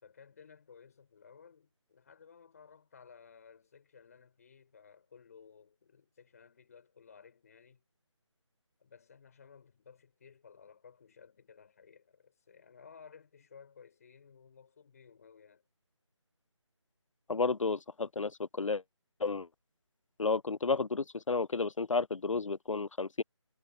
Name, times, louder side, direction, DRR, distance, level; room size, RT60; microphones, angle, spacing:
voice 1, 0.0-7.8 8.8-15.6, left 6 dB, 30° left, 3.7 m, -57 dB
voice 2, 17.3-18.8 19.2-19.5 20.2-23.2, left 4 dB, 85° left, 0.4 m, -32 dB
figure-of-eight pair, 160°, 16 cm